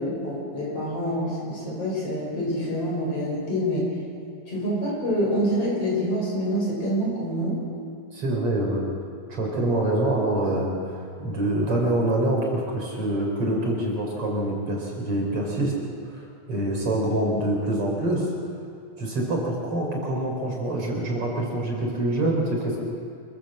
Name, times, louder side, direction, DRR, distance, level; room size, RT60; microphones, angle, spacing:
voice 1, 0.0-3.9 4.5-7.7, equal, 55° left, -4 dB, 7.7 m, -26 dB
voice 2, 8.1-8.8 9.3-10.7 11.2-15.7 16.0-18.3 19.0-22.8, right 1 dB, 50° right, -1 dB, 5.1 m, -25 dB
25.5 x 15.5 x 7.9 m, 2.3 s
omnidirectional pair, 3.3 m